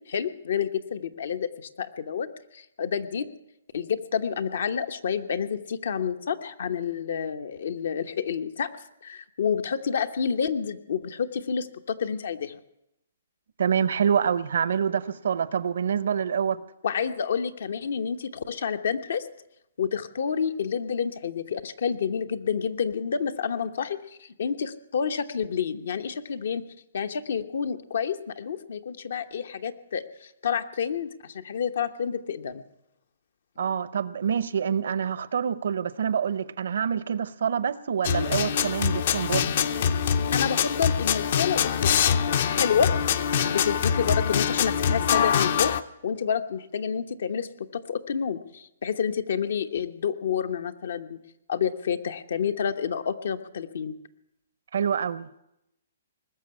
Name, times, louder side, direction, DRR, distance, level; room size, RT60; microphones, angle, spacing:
voice 1, 0.1-3.3 3.7-8.7 9.0-12.6 16.8-19.3 19.8-26.6 26.9-32.6 40.3-42.2 42.6-42.9 43.4-45.7 46.0-51.2 51.5-53.9, left 7 dB, 70° left, 1.0 m, -29 dB
voice 2, 13.6-16.6 33.6-39.5 54.7-55.4, right 7 dB, 70° right, 0.7 m, -26 dB
sound 1, 38.0-45.8, left 8 dB, 55° left, 0.7 m, -24 dB
20.0 x 6.9 x 9.6 m
hypercardioid pair, 150°, 0 cm